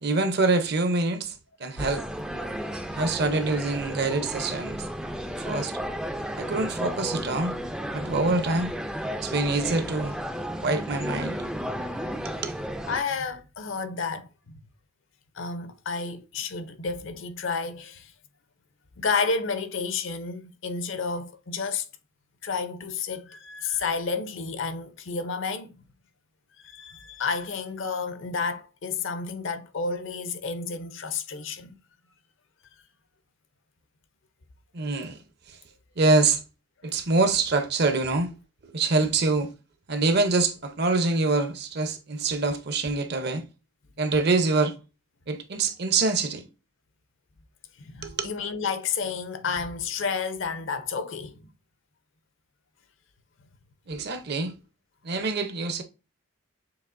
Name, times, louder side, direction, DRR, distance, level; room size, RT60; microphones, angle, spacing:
voice 1, 0.0-1.3 1.6-2.0 2.9-4.9 5.4-5.7 6.4-7.5 7.9-8.7 9.2-10.1 10.6-11.4 12.2-12.5 34.7-35.2 36.0-36.4 36.8-38.3 38.6-39.5 39.9-43.4 44.0-44.7 45.3-46.5 48.0-48.3 53.9-54.5 55.0-55.8, right 3 dB, 50° right, 0.7 m, -25 dB
sound 1, 1.8-13.0, equal, 5° right, 0.3 m, -33 dB
voice 2, 12.9-14.6 15.3-18.1 19.0-21.9 22.4-25.7 26.6-31.8 47.8-51.5, left 5 dB, 60° left, 0.6 m, -31 dB
6.8 x 2.9 x 2.5 m
head